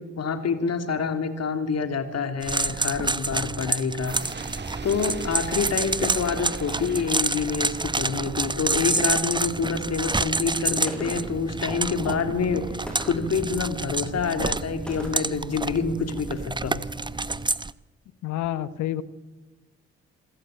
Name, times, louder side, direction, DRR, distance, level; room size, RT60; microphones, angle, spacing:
voice 1, 0.0-4.2 4.8-16.8, left 5 dB, 60° left, 8 dB, 3.2 m, -27 dB
sound 1, 2.4-17.7, right 3 dB, 15° right, 0.9 m, -28 dB
sound 2, 4.1-8.7, right 4 dB, 35° right, 1.8 m, -40 dB
Gunshot gunfire, 10.9-11.5 12.9-13.4 14.9-15.4, equal, 5° left, 8.0 m, -38 dB
voice 2, 18.2-19.0, left 12 dB, 75° left, 15 dB, 1.3 m, -28 dB
27.0 x 15.5 x 8.9 m, 1.2 s
hypercardioid pair, 45°, 30 cm